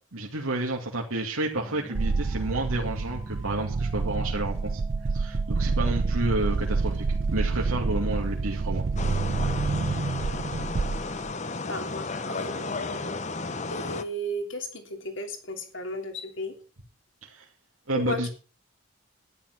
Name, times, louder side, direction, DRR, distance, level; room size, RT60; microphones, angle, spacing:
voice 1, 0.1-4.8 5.1-8.8 17.2-17.4 17.9-18.3, right 1 dB, 85° right, -1 dB, 2.5 m, -30 dB
sound 1, 1.6-10.8, right 2 dB, 10° right, 1.0 m, -45 dB
sound 2, 1.9-11.3, right 4 dB, 60° right, 0.5 m, -28 dB
sound 3, 9.0-14.0, left 3 dB, 35° left, 1.0 m, -33 dB
voice 2, 11.7-13.1 13.7-16.6 17.9-18.3, equal, 60° left, 5 dB, 3.0 m, -35 dB
12.5 x 10.5 x 6.2 m, 0.37 s
head